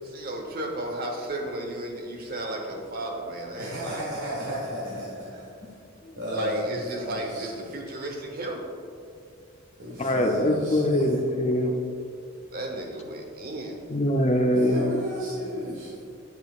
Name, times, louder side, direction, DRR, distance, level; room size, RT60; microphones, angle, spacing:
voice 1, 0.0-4.2 6.3-8.6 12.5-13.8, right 1 dB, 45° right, 2 dB, 1.0 m, -34 dB
voice 2, 3.6-5.3 5.6-5.7 6.2-7.1 9.8-11.0 14.5-16.1, equal, 70° right, -7 dB, 1.4 m, -32 dB
voice 3, 10.0-11.7 13.9-14.8, left 1 dB, 30° left, 4 dB, 0.6 m, -23 dB
10.0 x 6.5 x 2.4 m, 2.5 s
head